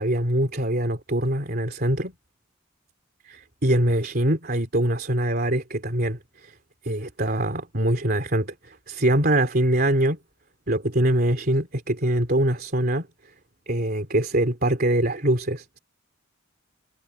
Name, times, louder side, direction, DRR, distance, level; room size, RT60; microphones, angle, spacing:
voice 1, 0.0-2.1 3.3-6.5 6.8-10.2 10.7-13.1 13.7-15.8, right 1 dB, 45° right, 3.2 m, -23 dB
head